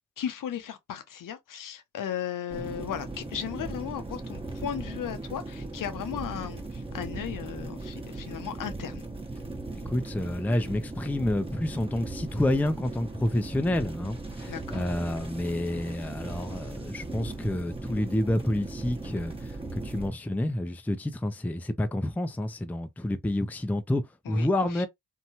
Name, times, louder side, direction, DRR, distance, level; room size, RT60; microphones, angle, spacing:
voice 1, 0.2-9.0 14.5-14.8 24.3-24.9, left 9 dB, 65° left, 0.7 m, -36 dB
sound 1, 2.5-20.1, right 2 dB, 15° right, 1.0 m, -38 dB
voice 2, 9.9-24.9, left 1 dB, 5° left, 0.4 m, -29 dB
2.7 x 2.2 x 2.7 m
cardioid pair, 60°, 34 cm